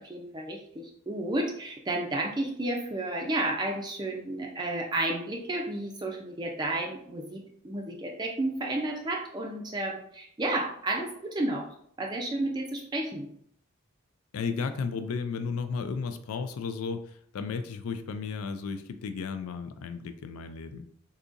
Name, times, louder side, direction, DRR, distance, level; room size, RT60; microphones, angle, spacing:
voice 1, 0.0-11.7 12.0-13.3, right 2 dB, 20° right, 0 dB, 0.4 m, -32 dB
voice 2, 14.3-20.9, left 5 dB, 85° left, 10 dB, 0.4 m, -34 dB
3.7 x 2.8 x 2.5 m, 0.67 s
head